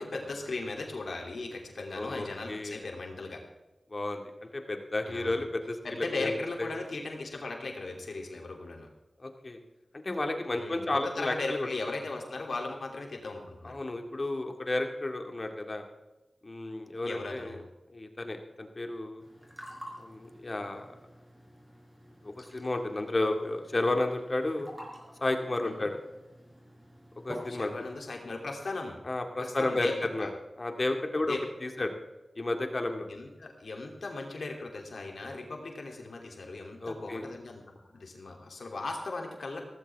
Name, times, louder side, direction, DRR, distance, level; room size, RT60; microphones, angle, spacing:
voice 1, 0.0-3.4 5.1-5.4 5.8-8.9 10.5-13.7 17.0-17.6 25.6-25.9 27.5-29.0 29.4-30.3 31.2-31.4 33.1-39.7, left 3 dB, 80° left, 1 dB, 3.1 m, -38 dB
voice 2, 1.9-2.9 3.9-6.3 6.6-6.7 9.2-9.6 9.9-11.7 13.6-15.8 16.4-17.5 17.9-19.2 20.0-20.9 22.2-24.7 25.2-26.0 27.2-27.7 29.0-30.3 30.6-31.9 32.4-33.1 36.8-37.3, left 2 dB, 45° left, 4 dB, 2.3 m, -32 dB
sound 1, 19.2-28.1, equal, 5° right, 5.3 m, -49 dB
17.0 x 15.0 x 3.6 m, 1.0 s
wide cardioid pair, 60°, 0 cm